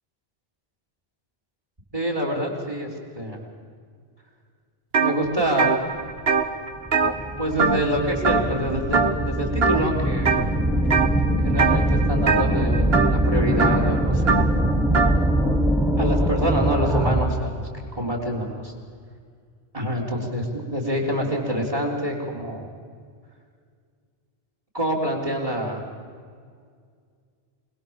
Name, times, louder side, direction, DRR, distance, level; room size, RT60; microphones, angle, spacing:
voice 1, 1.9-2.9 3.1-3.4 5.0-5.7 7.4-10.4 11.4-14.5 16.0-17.6 18.0-18.5 19.7-22.7 24.7-25.8, equal, 35° right, 1 dB, 3.9 m, -26 dB
sound 1, 4.9-5.1 5.5-8.0 8.2-8.6 8.9-9.3 9.6-10.4 10.9-11.2 11.5-15.2, right 5 dB, 70° right, 1.6 m, -22 dB
sound 2, 6.1-6.2 6.8-17.5, right 1 dB, ahead, 2.2 m, -23 dB
27.0 x 20.0 x 7.3 m, 2.1 s
omnidirectional pair, 1.1 m